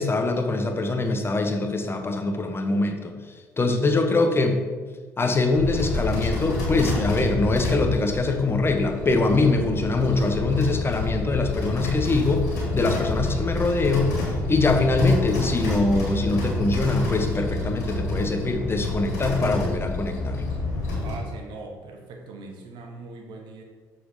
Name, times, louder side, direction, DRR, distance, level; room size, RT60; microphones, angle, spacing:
voice 1, 0.0-3.1 3.6-4.6 5.2-12.5 12.7-20.4, left 3 dB, 25° left, 5 dB, 1.0 m, -23 dB
sound 1, 5.5-21.1, left 2 dB, 90° left, 2.1 m, -28 dB
voice 2, 21.0-23.6, right 3 dB, 65° right, 2 dB, 1.3 m, -40 dB
6.9 x 4.4 x 5.2 m, 1.5 s
hypercardioid pair, 55°, 9 cm